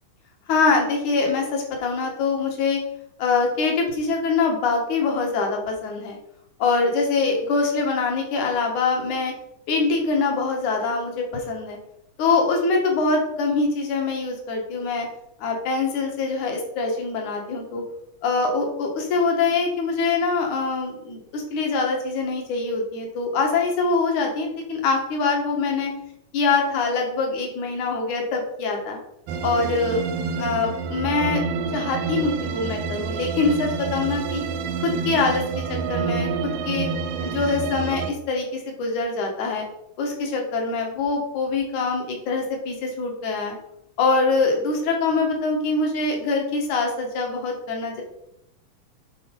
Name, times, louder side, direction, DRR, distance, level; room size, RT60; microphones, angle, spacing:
voice 1, 0.5-2.8 3.2-6.2 6.6-9.3 9.7-11.8 12.2-15.1 15.4-17.8 18.2-25.9 26.3-29.0 29.4-30.0 30.4-31.4 31.7-34.4 34.8-35.4 35.7-36.9 37.2-39.6 40.0-43.6 44.0-48.0, left 4 dB, 60° left, 2 dB, 2.9 m, -24 dB
sound 1, 29.3-38.1, right 5 dB, 80° right, 2.3 m, -28 dB
9.8 x 4.4 x 5.4 m, 0.80 s
omnidirectional pair, 4.0 m